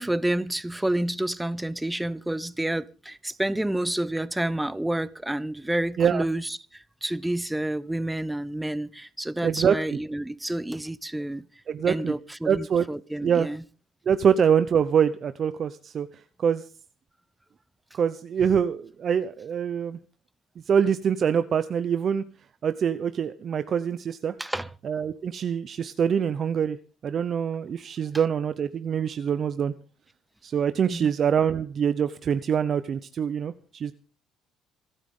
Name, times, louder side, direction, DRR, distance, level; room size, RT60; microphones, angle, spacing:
voice 1, 0.0-11.4 11.9-13.6 24.4-24.7 30.9-31.1, right 1 dB, 5° right, 0.7 m, -29 dB
voice 2, 9.4-10.0 11.7-12.2 12.5-12.9 13.2-13.5 14.1-16.1 16.4-16.6 17.9-20.0 20.7-22.2 22.6-24.3 24.8-26.8 27.0-29.7 30.4-33.9, right 7 dB, 40° right, 0.8 m, -24 dB
27.0 x 9.2 x 3.8 m
cardioid pair, 125°, 0 cm